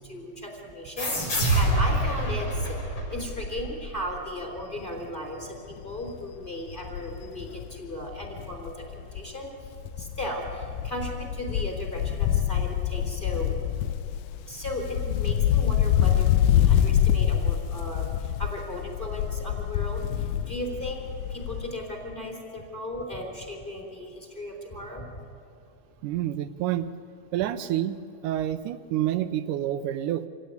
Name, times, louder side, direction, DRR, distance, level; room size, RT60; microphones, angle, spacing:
voice 1, 0.0-13.7 14.3-25.2, equal, 15° left, 1 dB, 3.5 m, -36 dB
sound 1, 1.0-4.2, right 1 dB, 40° left, 5.2 m, -26 dB
Wind, 4.8-5.1 5.4-5.5 5.8-9.4 9.6-21.8 22.1-22.2, left 10 dB, 85° left, 2.2 m, -26 dB
voice 2, 26.0-26.9 27.3-28.0 28.2-30.3, right 12 dB, 85° right, 11 dB, 2.3 m, -28 dB
26.0 x 16.5 x 9.4 m, 2.6 s
omnidirectional pair, 3.6 m